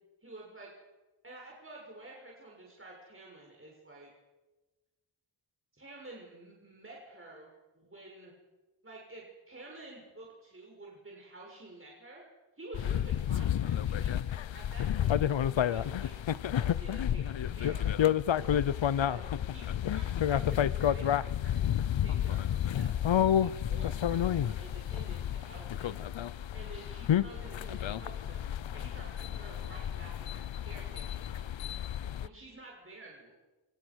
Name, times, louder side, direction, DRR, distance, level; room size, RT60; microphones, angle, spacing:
voice 1, 0.2-0.7 1.2-4.1 5.7-7.5 7.8-8.3 8.8-12.2 12.6-14.2 14.5-18.0 18.9-19.2 19.5-23.0 23.4-26.0 26.5-28.5 28.7-31.4 32.2-33.3, right 2 dB, 30° right, -2 dB, 6.8 m, -50 dB
sound 1, 12.7-32.3, left 10 dB, 75° left, 0.8 m, -30 dB
28.0 x 26.0 x 6.4 m, 1.2 s
wide cardioid pair, 65°, 45 cm